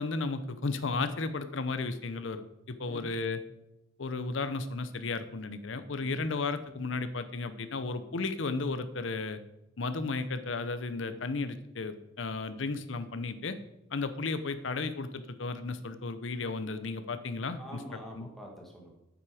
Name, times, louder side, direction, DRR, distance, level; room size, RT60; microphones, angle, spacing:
voice 1, 0.0-2.4 2.7-3.4 4.0-9.4 9.8-13.6 13.9-17.8 18.2-18.3, left 3 dB, 75° left, 11 dB, 0.8 m, -34 dB
voice 2, 17.6-18.9, equal, ahead, -1 dB, 1.7 m, -46 dB
9.0 x 7.6 x 4.9 m, 0.93 s
head